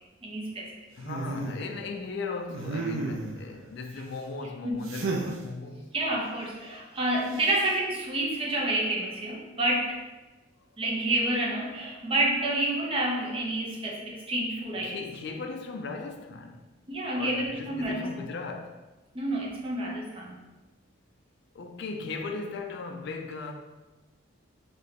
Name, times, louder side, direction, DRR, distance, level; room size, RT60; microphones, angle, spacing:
voice 1, 0.2-0.7 4.6-4.8 5.9-10.0 10.8-15.0 16.9-18.1 19.1-20.4, right 1 dB, 25° right, 0.6 m, -29 dB
voice 2, 1.0-5.9 14.8-16.7 17.1-18.8 21.5-23.5, left 4 dB, 55° left, 0.3 m, -37 dB
sound 1, 1.0-1.6 2.5-3.4 4.9-5.4 7.3-7.7, right 3 dB, 75° right, 0.5 m, -32 dB
3.2 x 2.7 x 4.1 m
head